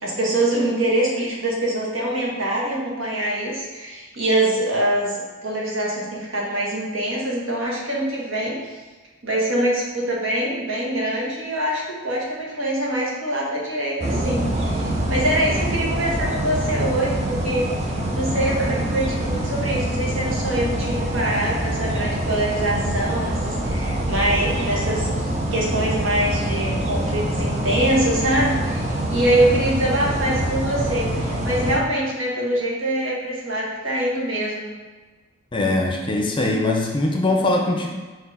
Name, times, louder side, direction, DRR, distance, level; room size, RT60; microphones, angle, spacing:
voice 1, 0.0-8.6 9.2-34.8, right 1 dB, 65° right, -4 dB, 1.5 m, -24 dB
sound 1, 14.0-31.8, right 1 dB, 30° right, 0.7 m, -25 dB
voice 2, 35.5-37.9, left 2 dB, 25° left, 1 dB, 0.6 m, -21 dB
4.7 x 3.9 x 5.5 m, 1.3 s
head